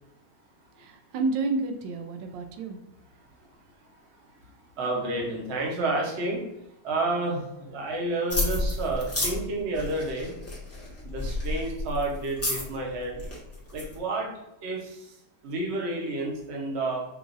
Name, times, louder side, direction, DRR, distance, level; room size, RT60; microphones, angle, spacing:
voice 1, 0.8-2.8, right 3 dB, 90° right, 5 dB, 1.3 m, -30 dB
voice 2, 4.8-6.4 6.8-10.4 11.0-13.2 13.7-14.3 14.6-15.1 15.4-17.0, right 2 dB, 45° right, -1 dB, 1.0 m, -30 dB
sound 1, 8.3-14.0, left 2 dB, 10° left, 0.8 m, -31 dB
5.9 x 2.5 x 2.5 m, 0.87 s
omnidirectional pair, 1.9 m